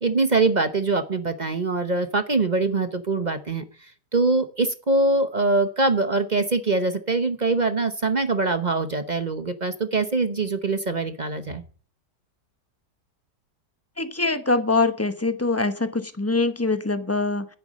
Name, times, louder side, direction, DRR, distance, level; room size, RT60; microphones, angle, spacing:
voice 1, 0.0-11.6, right 3 dB, 35° right, 10 dB, 0.8 m, -23 dB
voice 2, 14.0-17.5, left 3 dB, 15° left, 10 dB, 0.7 m, -23 dB
10.5 x 10.5 x 5.2 m, 0.41 s
omnidirectional pair, 1.8 m